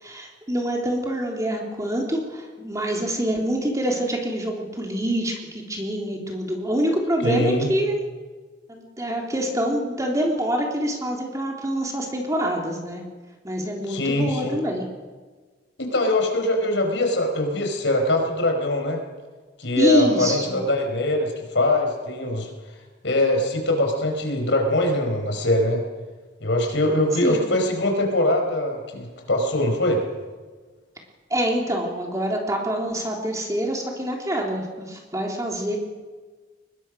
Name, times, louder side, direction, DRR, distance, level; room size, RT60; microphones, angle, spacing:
voice 1, 0.0-8.0 8.7-13.0 13.4-14.8 19.8-20.6 27.2-27.4 31.3-35.8, equal, 15° right, 0 dB, 3.5 m, -25 dB
voice 2, 7.2-7.7 13.8-14.5 15.8-19.0 19.6-22.5 23.0-25.8 26.4-30.0, left 1 dB, 70° left, 3 dB, 4.9 m, -22 dB
22.5 x 21.5 x 6.4 m, 1.4 s
head